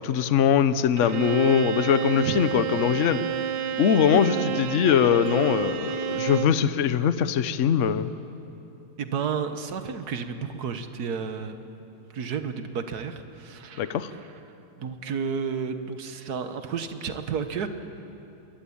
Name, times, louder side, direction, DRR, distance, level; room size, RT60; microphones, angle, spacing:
voice 1, 0.0-3.2 3.8-8.1 13.8-14.1, left 8 dB, 60° left, 13 dB, 0.8 m, -22 dB
Bowed string instrument, 1.0-6.6, right 8 dB, 70° right, 1.8 m, -30 dB
Chink clink, 5.3-10.4, left 3 dB, 30° left, 3.8 m, -46 dB
voice 2, 9.0-11.5 12.1-14.0 14.8-17.7, right 6 dB, 50° right, 8 dB, 1.6 m, -31 dB
24.5 x 22.0 x 8.7 m, 2.9 s
omnidirectional pair, 2.3 m